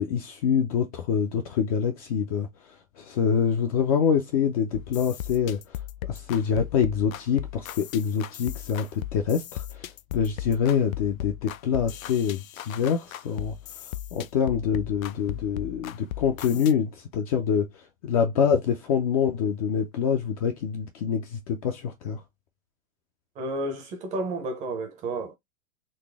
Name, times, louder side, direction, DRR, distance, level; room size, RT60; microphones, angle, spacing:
voice 1, 0.0-2.5 3.0-5.8 6.1-13.6 14.1-17.7 18.0-22.2, left 7 dB, 30° left, 0.4 m, -25 dB
sound 1, 4.7-16.7, left 12 dB, 80° left, 0.5 m, -37 dB
voice 2, 23.4-25.3, right 2 dB, 20° right, 0.6 m, -31 dB
4.1 x 2.0 x 3.3 m
hypercardioid pair, 145°, 41 cm